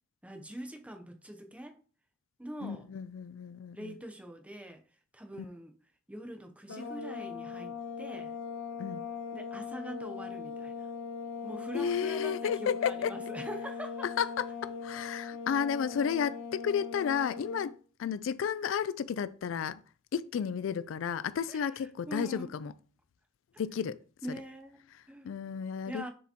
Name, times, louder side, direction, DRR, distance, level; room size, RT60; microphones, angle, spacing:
voice 1, 0.2-1.8 2.4-2.9 3.7-4.8 5.1-5.7 6.1-8.4 9.3-10.9 11.4-14.1 21.5-21.7 22.1-22.5 24.2-25.3 25.9-26.1, right 1 dB, 5° right, 0.7 m, -43 dB
voice 2, 2.6-3.9 5.4-5.5 8.8-9.1 11.7-13.1 14.2-17.7 18.0-19.8 20.1-22.7 23.6-24.0 24.9-26.1, left 7 dB, 70° left, 0.3 m, -32 dB
sound 1, 6.7-17.7, left 6 dB, 85° left, 0.9 m, -40 dB
6.8 x 4.9 x 2.9 m
head